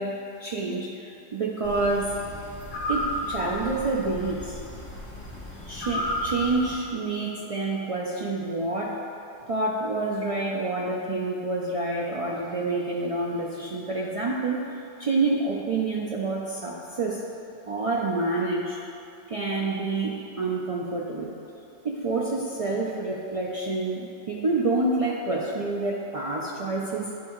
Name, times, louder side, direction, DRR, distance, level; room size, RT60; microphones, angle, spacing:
voice 1, 0.0-2.1 2.9-4.6 5.7-9.1 9.5-14.6 15.0-17.2 17.7-18.8 19.3-21.3 21.8-27.1, right 3 dB, 60° right, -3 dB, 0.3 m, -28 dB
sound 1, 1.6-6.8, left 1 dB, 65° left, 1.6 m, -33 dB
9.5 x 3.5 x 3.0 m, 2.7 s
omnidirectional pair, 1.1 m